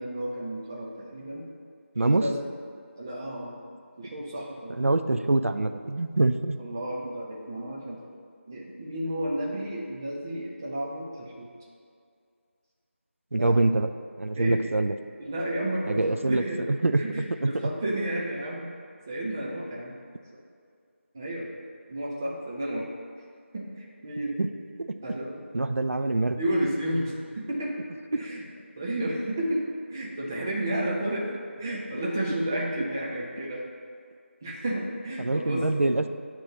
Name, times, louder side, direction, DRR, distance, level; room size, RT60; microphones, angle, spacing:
voice 1, 0.0-1.4 2.0-2.4 3.0-3.6 4.0-4.8 6.6-8.0 8.5-11.5 13.4-13.6 14.4-14.6 15.2-16.7 17.0-18.7 19.1-20.0 21.1-21.5 21.9-22.9 23.5-24.3 25.0-25.4 26.4-27.7 28.1-28.4 28.8-29.6 29.9-31.3 31.6-33.7 34.4-35.8, right 1 dB, 15° right, -4 dB, 0.5 m, -32 dB
voice 2, 2.0-2.3 4.7-6.6 13.3-13.9 14.2-14.9 15.9-17.0 17.4-17.7 24.4-24.5 24.8-25.0 25.5-26.4 28.1-28.3 35.2-36.1, right 2 dB, 85° right, 8 dB, 0.4 m, -25 dB
8.5 x 3.0 x 6.4 m, 2.3 s
figure-of-eight pair, 170°, 7 cm